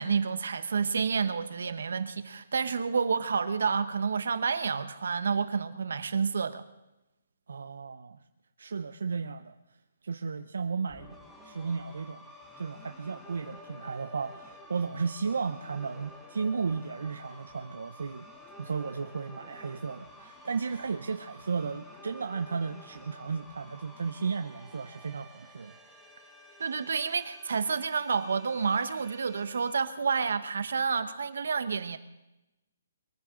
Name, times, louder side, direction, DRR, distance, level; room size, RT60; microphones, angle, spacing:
voice 1, 0.0-6.6 26.6-32.0, right 5 dB, 65° right, 11 dB, 1.2 m, -29 dB
voice 2, 7.5-8.2 8.6-9.5 10.0-11.2 11.4-12.3 12.6-18.3 18.6-25.7, right 5 dB, 80° right, 8 dB, 0.7 m, -34 dB
sound 1, 10.9-29.8, left 1 dB, ahead, 1.0 m, -51 dB
22.5 x 14.5 x 3.9 m, 0.97 s
hypercardioid pair, 180°, 0 cm